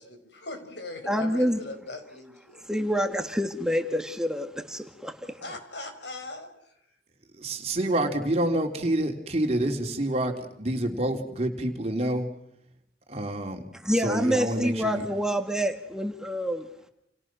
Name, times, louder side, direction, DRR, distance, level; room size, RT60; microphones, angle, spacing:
voice 1, 0.0-2.6 5.4-6.7, left 2 dB, 85° left, 7 dB, 5.3 m, -40 dB
voice 2, 1.1-1.6 2.6-5.4 13.7-16.7, equal, 5° right, 5 dB, 1.7 m, -27 dB
voice 3, 7.4-12.3 13.1-13.6 14.0-15.1, right 1 dB, 35° right, 3 dB, 3.6 m, -27 dB
29.5 x 29.0 x 6.3 m, 0.79 s
head